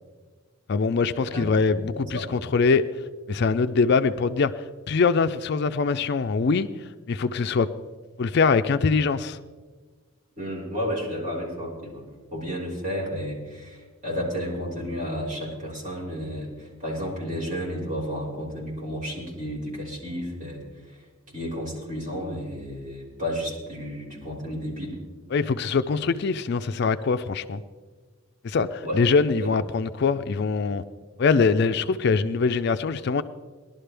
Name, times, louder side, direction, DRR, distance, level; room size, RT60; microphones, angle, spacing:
voice 1, 0.7-2.8 3.3-4.5 4.9-6.7 7.1-7.7 8.2-9.4 25.3-27.6 28.4-30.8 31.2-33.2, left 4 dB, 50° left, 11 dB, 0.4 m, -23 dB
voice 2, 10.4-12.0 12.3-20.6 21.3-25.0 28.8-29.0 29.3-29.5, equal, 35° right, -5 dB, 4.6 m, -32 dB
19.5 x 12.0 x 3.4 m, 1.4 s
head